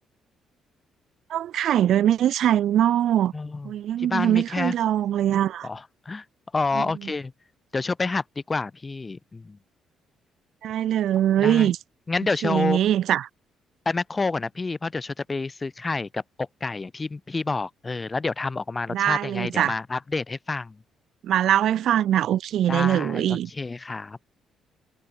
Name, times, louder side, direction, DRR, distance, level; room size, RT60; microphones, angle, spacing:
voice 1, 1.3-3.3 3.6-5.7 6.7-6.9 10.6-11.8 12.4-13.3 18.9-19.7 21.2-23.5, right 11 dB, 70° right, 0.5 m, -22 dB
voice 2, 3.3-3.7 4.0-4.7 5.6-6.2 6.5-7.3 7.7-9.6 11.4-11.7 12.1-12.8 13.8-20.8 22.7-24.2, left 3 dB, 30° left, 1.0 m, -28 dB
supercardioid pair, 60°, 0 cm